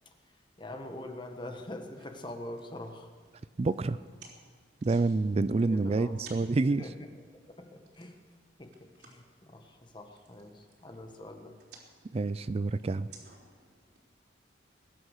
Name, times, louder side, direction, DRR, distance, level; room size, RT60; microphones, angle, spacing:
voice 1, 0.2-3.1 5.7-6.2 6.7-7.2 7.6-8.2 8.6-11.6, left 1 dB, 25° left, 5 dB, 1.3 m, -44 dB
sound 1, 1.9-14.0, right 4 dB, 65° right, 3.7 m, -58 dB
voice 2, 3.6-4.0 4.8-6.8 12.1-13.1, right 3 dB, 35° right, 15 dB, 0.4 m, -28 dB
21.0 x 9.7 x 6.5 m, 1.5 s
head